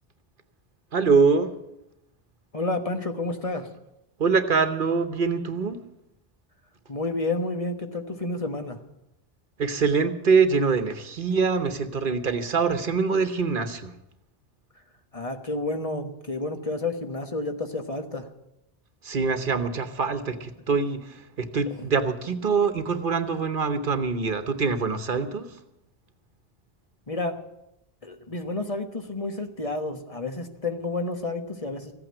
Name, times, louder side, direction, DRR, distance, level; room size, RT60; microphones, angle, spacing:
voice 1, 0.9-1.5 4.2-5.8 9.6-13.9 19.0-25.5, right 5 dB, 60° right, 10 dB, 1.1 m, -24 dB
voice 2, 2.5-3.7 6.9-8.8 15.1-18.3 27.1-27.4 28.0-31.9, left 2 dB, 35° left, 6 dB, 1.3 m, -30 dB
15.0 x 8.9 x 8.8 m, 0.87 s
omnidirectional pair, 1.0 m